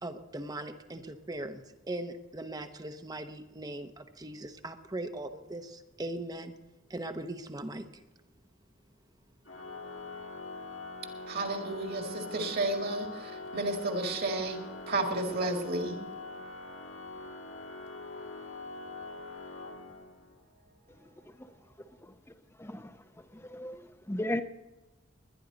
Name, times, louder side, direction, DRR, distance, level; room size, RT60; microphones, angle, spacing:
voice 1, 0.0-6.5 6.9-7.8, right 1 dB, 20° right, 0.8 m, -39 dB
Organ, 9.4-20.4, left 3 dB, 90° left, 1.5 m, -43 dB
voice 2, 11.3-13.1 13.5-14.6 14.9-16.0, right 2 dB, 50° right, 2.0 m, -31 dB
voice 3, 22.6-22.9 23.3-23.8 24.1-24.4, left 1 dB, 10° left, 0.7 m, -34 dB
20.5 x 11.0 x 4.0 m
head